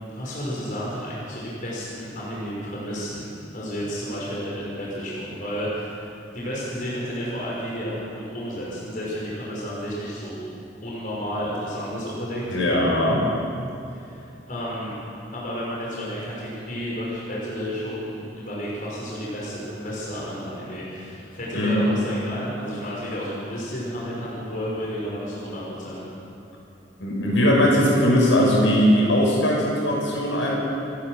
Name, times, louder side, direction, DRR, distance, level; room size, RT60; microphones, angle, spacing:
voice 1, 0.1-3.2 3.5-6.1 6.3-10.4 10.8-12.6 13.9-15.0 15.3-26.0, equal, 45° left, -6 dB, 5.4 m, -31 dB
voice 2, 12.5-13.2 21.5-21.8 27.0-30.5, equal, 90° left, -3 dB, 7.0 m, -20 dB
29.0 x 11.5 x 7.9 m, 2.7 s
head